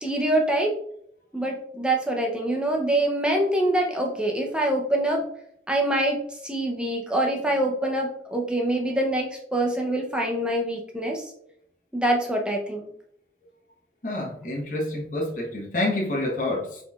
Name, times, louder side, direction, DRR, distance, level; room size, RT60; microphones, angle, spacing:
voice 1, 0.0-0.7 1.3-5.3 5.7-11.3 11.9-12.9, right 1 dB, 5° right, 1 dB, 0.7 m, -25 dB
voice 2, 14.0-16.8, left 1 dB, 45° left, -3 dB, 1.1 m, -28 dB
4.9 x 4.1 x 2.4 m, 0.70 s
head